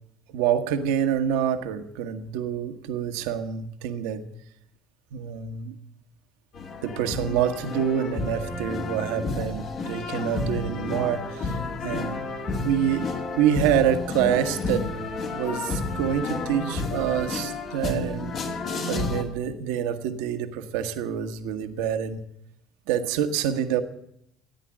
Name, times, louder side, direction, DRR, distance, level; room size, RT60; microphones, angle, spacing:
voice 1, 0.3-4.2 5.1-5.7 6.8-12.2 12.6-13.1 13.3-14.9 15.3-18.4 18.9-22.2 22.9-23.8, right 9 dB, 75° right, 8 dB, 1.2 m, -26 dB
sound 1, 6.5-19.2, left 3 dB, 55° left, 2.4 m, -31 dB
14.5 x 9.9 x 7.4 m, 0.78 s
hypercardioid pair, 65°, 0 cm